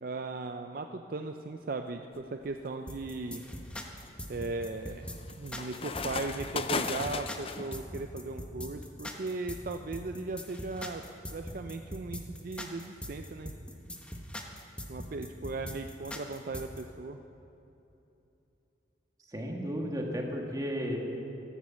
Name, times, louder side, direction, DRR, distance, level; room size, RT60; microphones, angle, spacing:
voice 1, 0.0-3.4 4.3-5.0 5.4-11.0 11.3-13.5 14.9-17.2, right 3 dB, 50° right, 6 dB, 0.5 m, -37 dB
sound 1, 2.2-2.6 3.1-7.8, left 5 dB, 30° left, 0.5 m, -37 dB
sound 2, 2.9-16.8, left 1 dB, 5° left, 1.0 m, -42 dB
voice 2, 19.3-21.0, equal, 20° right, 0 dB, 1.7 m, -33 dB
13.5 x 12.0 x 7.3 m, 2.9 s
head